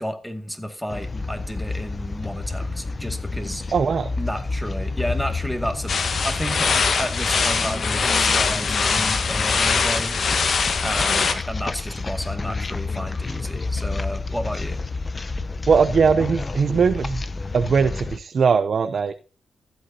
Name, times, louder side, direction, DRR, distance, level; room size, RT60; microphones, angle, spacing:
voice 1, 0.0-3.6 4.2-5.9 6.2-10.2 10.8-14.8, equal, 5° left, 5 dB, 2.1 m, -31 dB
sound 1, 0.9-18.2, left 3 dB, 35° left, 0.8 m, -30 dB
voice 2, 3.7-4.1 15.7-17.2 17.5-19.1, right 5 dB, 60° right, 10 dB, 0.6 m, -20 dB
sound 2, 5.9-11.3, left 5 dB, 60° left, 1.4 m, -22 dB
15.0 x 8.3 x 2.8 m, 0.36 s
cardioid pair, 65°, 0 cm